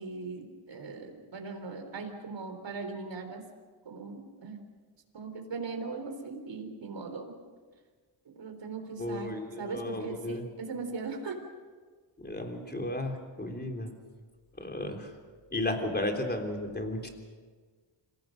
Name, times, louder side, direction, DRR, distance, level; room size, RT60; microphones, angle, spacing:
voice 1, 0.0-3.4 3.9-4.6 5.1-7.3 8.3-11.4, right 4 dB, 65° right, 5 dB, 3.9 m, -39 dB
voice 2, 9.0-10.5 12.2-13.9 14.6-15.1 15.5-17.1, left 1 dB, 20° left, 3 dB, 3.4 m, -34 dB
26.5 x 17.5 x 6.5 m, 1.5 s
cardioid pair, 90°, 47 cm